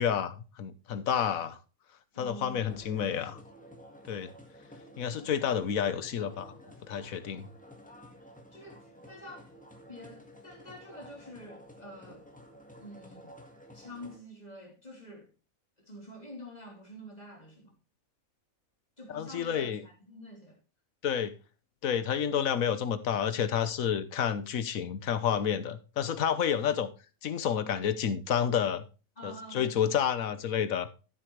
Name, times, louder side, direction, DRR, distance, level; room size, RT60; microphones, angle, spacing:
voice 1, 0.0-1.6 2.2-3.4 4.1-4.3 5.0-6.6 6.9-7.5 19.1-19.8 21.0-21.3 21.8-26.9 27.2-28.8 29.2-30.9, left 8 dB, 75° left, 1.3 m, -30 dB
voice 2, 2.1-2.7 8.5-9.5 9.9-12.3 12.8-13.3 13.7-15.3 15.8-17.7 19.0-20.6 29.2-29.7, equal, 30° left, 3.5 m, -47 dB
sound 1, 2.7-14.2, equal, 5° left, 1.8 m, -52 dB
12.5 x 7.5 x 3.2 m
omnidirectional pair, 1.5 m